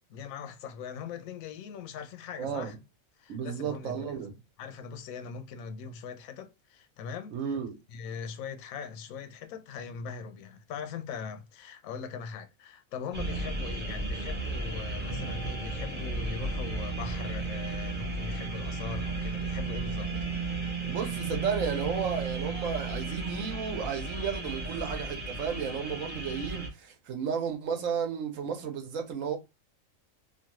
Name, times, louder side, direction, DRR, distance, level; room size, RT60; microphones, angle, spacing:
voice 1, 0.1-2.7 3.2-4.2 4.6-7.6 7.9-20.1, left 6 dB, 85° left, 1.0 m, -41 dB
voice 2, 2.4-2.8 3.3-4.3 7.3-7.7 20.8-29.4, right 7 dB, 75° right, 1.2 m, -33 dB
sound 1, 13.1-26.7, right 3 dB, 10° right, 0.5 m, -34 dB
3.1 x 2.2 x 2.9 m
omnidirectional pair, 1.4 m